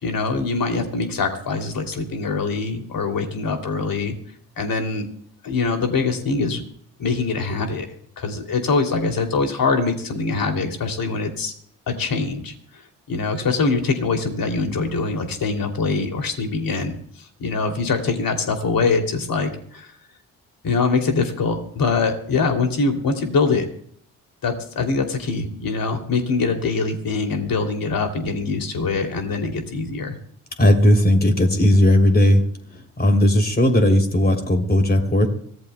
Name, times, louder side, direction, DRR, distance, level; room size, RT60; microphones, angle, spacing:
voice 1, 0.0-4.1 4.6-5.1 5.4-6.6 7.0-7.9 8.2-11.5 11.9-12.5 13.1-16.9 17.4-19.9 20.6-23.7 24.4-30.2, left 4 dB, 55° left, 4 dB, 2.9 m, -23 dB
voice 2, 30.6-32.4 33.0-35.3, left 1 dB, 20° left, 3 dB, 3.2 m, -16 dB
25.0 x 16.0 x 2.3 m, 0.64 s
hypercardioid pair, 45°, 42 cm